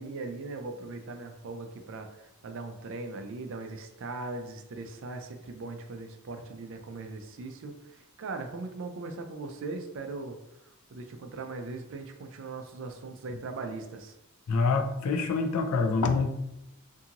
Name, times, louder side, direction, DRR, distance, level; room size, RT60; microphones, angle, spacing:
voice 1, 0.0-10.4 10.9-14.1, right 3 dB, 60° right, 6 dB, 0.4 m, -39 dB
voice 2, 14.5-16.3, left 4 dB, 90° left, 5 dB, 0.4 m, -26 dB
2.6 x 2.4 x 2.8 m, 0.88 s
head